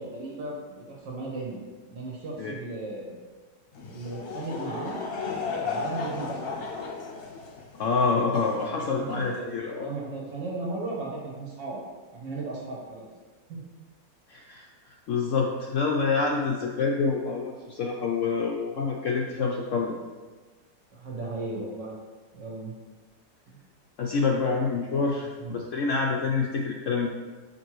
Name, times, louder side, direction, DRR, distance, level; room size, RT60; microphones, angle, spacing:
voice 1, 0.0-1.6 1.9-3.2 3.9-5.0 5.6-6.6 8.6-9.5 9.8-11.8 12.1-13.0 13.5-13.6 20.9-21.9 22.3-22.7 23.5-23.6 25.4-25.5, right 2 dB, 80° right, -3 dB, 2.0 m, -36 dB
Laughter / Crowd, 3.7-9.5, left 4 dB, 50° left, 0.7 m, -35 dB
voice 2, 7.7-9.9 14.3-14.7 15.1-20.0 24.0-27.1, left 4 dB, 85° left, -1 dB, 0.6 m, -27 dB
6.0 x 5.2 x 3.1 m, 1.3 s
omnidirectional pair, 1.9 m